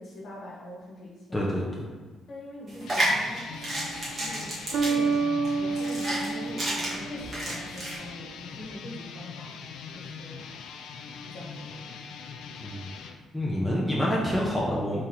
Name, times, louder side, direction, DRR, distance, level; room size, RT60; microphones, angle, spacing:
voice 1, 0.0-1.5 2.3-3.5 4.2-5.2 5.6-9.5 9.9-10.5 11.3-11.9, left 1 dB, 55° left, -5 dB, 1.4 m, -43 dB
voice 2, 1.3-1.9 12.6-12.9 13.3-15.0, equal, 5° left, -5 dB, 0.6 m, -27 dB
sound 1, 2.7-8.0, right 1 dB, 30° right, 1.4 m, -31 dB
sound 2, 2.8-13.2, left 6 dB, 80° left, 0.4 m, -42 dB
sound 3, 3.5-4.0 4.7-7.6, right 4 dB, 60° right, 0.4 m, -29 dB
3.7 x 2.9 x 4.5 m, 1.3 s
cardioid pair, 140°, 0 cm